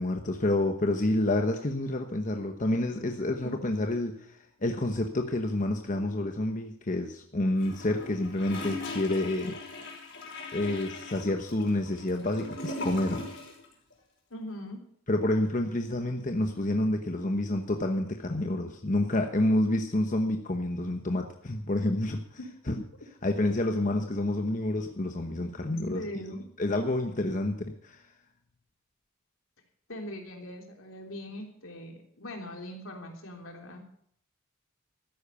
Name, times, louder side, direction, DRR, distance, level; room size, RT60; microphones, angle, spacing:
voice 1, 0.0-9.6 10.5-13.3 15.1-22.2 22.7-22.8 23.2-26.0 26.6-28.0, left 1 dB, 40° left, 5 dB, 1.0 m, -28 dB
voice 2, 3.4-3.9 14.3-14.8 22.4-22.5 25.9-26.4 29.9-33.8, left 1 dB, 75° left, 2 dB, 3.2 m, -41 dB
Gurgling / Toilet flush, 7.6-13.7 13.9-14.0, left 2 dB, 60° left, 5.2 m, -39 dB
13.5 x 10.5 x 6.9 m, 0.66 s
head